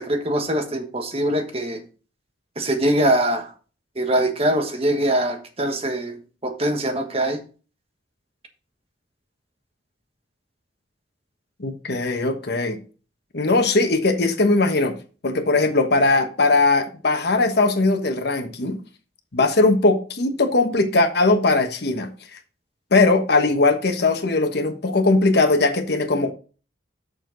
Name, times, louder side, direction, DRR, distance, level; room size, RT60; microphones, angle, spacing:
voice 1, 0.0-1.8 2.6-3.5 4.0-7.4, right 1 dB, 35° right, 1.4 m, -23 dB
voice 2, 11.6-12.8 13.3-15.0 15.2-18.8 19.3-22.4 22.9-26.3, left 3 dB, 65° left, 1.2 m, -19 dB
7.2 x 6.5 x 3.9 m
head